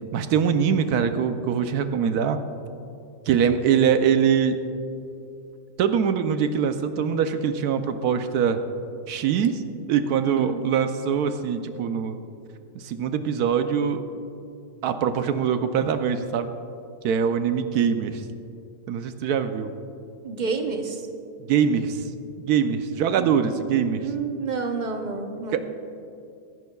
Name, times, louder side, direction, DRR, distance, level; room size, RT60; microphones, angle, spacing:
voice 1, 0.1-2.4 3.3-4.6 5.8-8.6 9.1-9.6 9.9-12.2 12.7-14.0 14.8-16.5 17.0-18.2 18.9-19.7 21.5-22.0 22.4-24.1 25.5-25.6, right 7 dB, 80° right, 9 dB, 1.1 m, -23 dB
voice 2, 20.2-21.0 23.2-23.6 24.0-25.6, right 4 dB, 35° right, 4 dB, 0.8 m, -29 dB
24.0 x 11.0 x 2.3 m, 2.6 s
omnidirectional pair, 1.6 m